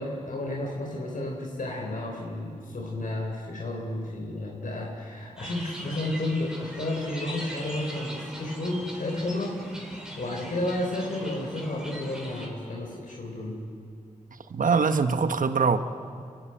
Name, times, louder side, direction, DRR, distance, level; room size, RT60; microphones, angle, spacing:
voice 1, 0.0-13.6, left 1 dB, 75° left, -1 dB, 4.1 m, -32 dB
sound 1, 5.4-12.5, equal, 5° right, 4.4 m, -41 dB
voice 2, 14.5-15.8, right 5 dB, 75° right, 9 dB, 1.1 m, -23 dB
30.0 x 13.5 x 9.1 m, 2.3 s
wide cardioid pair, 70°, 14 cm